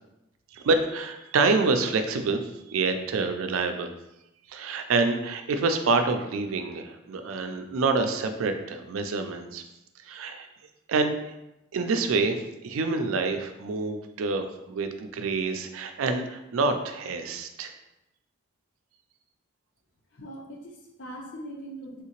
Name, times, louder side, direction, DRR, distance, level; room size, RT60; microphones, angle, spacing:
voice 1, 0.5-3.9 4.5-9.6 10.0-10.5 10.9-11.1 11.7-17.7, right 3 dB, 85° right, 7 dB, 0.4 m, -27 dB
voice 2, 20.1-22.0, right 1 dB, 60° left, 1 dB, 0.6 m, -41 dB
3.5 x 2.7 x 2.9 m, 0.90 s
head